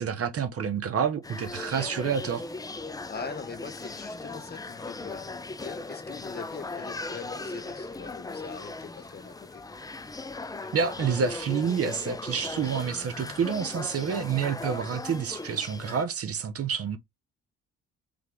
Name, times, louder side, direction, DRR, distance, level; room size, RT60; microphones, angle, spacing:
voice 1, 0.0-2.5 10.7-17.0, right 7 dB, 50° right, 0.9 m, -28 dB
sound 1, 1.2-16.0, left 3 dB, 10° left, 0.4 m, -38 dB
voice 2, 3.1-5.3 5.6-9.6, left 5 dB, 35° left, 1.0 m, -42 dB
3.6 x 3.4 x 3.4 m
cardioid pair, 90°, 30 cm